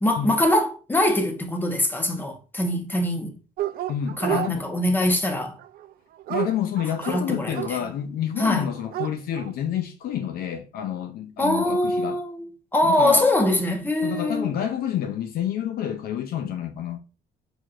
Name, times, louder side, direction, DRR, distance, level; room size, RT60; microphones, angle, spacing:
voice 1, 0.0-3.4 4.2-5.6 7.1-7.6 8.4-8.6 11.4-12.4 12.7-14.5, left 1 dB, 10° left, 1.1 m, -23 dB
Dog, 3.6-4.5 5.6-7.7 8.4-8.5 8.8-9.5, right 13 dB, 60° right, 0.4 m, -30 dB
voice 2, 3.9-4.7 6.3-12.2 12.8-13.3 14.0-17.0, left 9 dB, 65° left, 0.5 m, -28 dB
4.7 x 4.3 x 2.5 m
cardioid pair, 110°, 17 cm